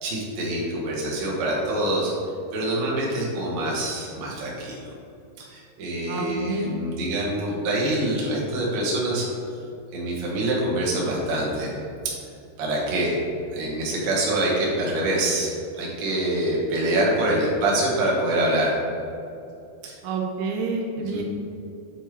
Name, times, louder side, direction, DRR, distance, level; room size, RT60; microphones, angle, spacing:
voice 1, 0.0-2.1 2.5-4.9 5.4-9.3 9.9-11.7 12.1-12.2 12.6-13.2 13.5-18.8 19.8-19.9 21.1-21.2, right 1 dB, 60° right, -4 dB, 1.9 m, -25 dB
voice 2, 6.1-6.7 20.0-21.2, right 4 dB, 90° right, 1 dB, 2.1 m, -28 dB
8.8 x 4.4 x 3.2 m, 2.7 s
omnidirectional pair, 4.9 m